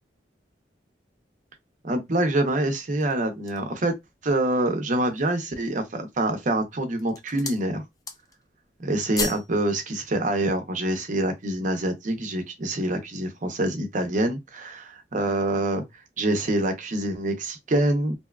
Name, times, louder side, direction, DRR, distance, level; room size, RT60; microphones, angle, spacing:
voice 1, 1.8-3.9 4.2-7.8 8.8-15.8 16.2-18.1, right 1 dB, 45° right, 0.6 m, -26 dB
sound 1, 2.8-3.8 4.4-4.5 4.9-5.5 6.2-6.6 6.9-7.7 7.9-8.5 8.7-9.5 9.8-10.0, left 4 dB, 20° left, 0.4 m, -34 dB
2.8 x 2.2 x 2.2 m
head